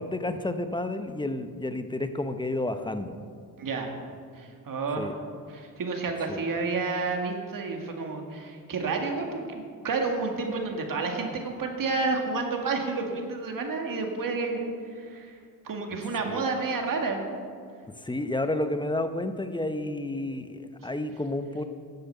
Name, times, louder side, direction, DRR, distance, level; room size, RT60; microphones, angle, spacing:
voice 1, 0.0-3.2 5.0-5.1 6.3-6.4 16.2-16.5 18.0-21.6, left 1 dB, 10° left, 9 dB, 0.8 m, -31 dB
voice 2, 3.6-3.9 4.4-5.1 5.5-15.4 15.6-17.2, right 4 dB, 60° right, 3 dB, 2.1 m, -30 dB
12.5 x 8.0 x 6.8 m, 2.2 s
cardioid pair, 75°, 37 cm